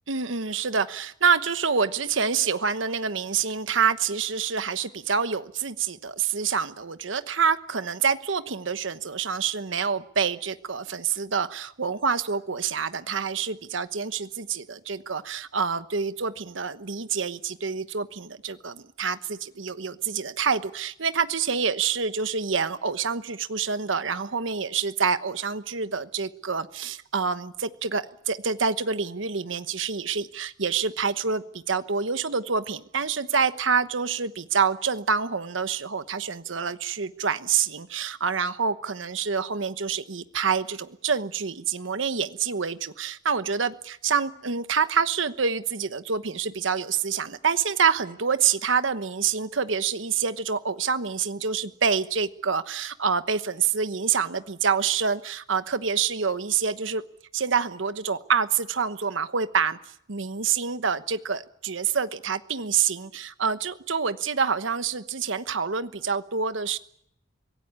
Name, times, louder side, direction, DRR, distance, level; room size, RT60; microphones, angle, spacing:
voice 1, 0.1-57.0 57.3-66.8, right 6 dB, 80° right, 12 dB, 1.1 m, -27 dB
24.5 x 18.0 x 9.6 m, 0.72 s
head